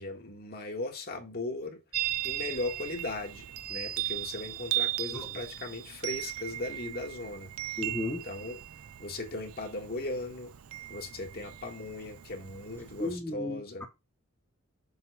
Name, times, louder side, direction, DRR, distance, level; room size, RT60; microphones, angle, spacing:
voice 1, 0.0-1.8 2.2-7.5 8.2-8.6 9.0-10.5 10.9-13.9, left 2 dB, 45° left, 1.7 m, -38 dB
Chime, 1.9-13.1, right 14 dB, 85° right, 0.5 m, -37 dB
voice 2, 7.8-8.2 13.0-13.8, left 2 dB, 10° left, 1.2 m, -34 dB
7.3 x 3.7 x 4.8 m
head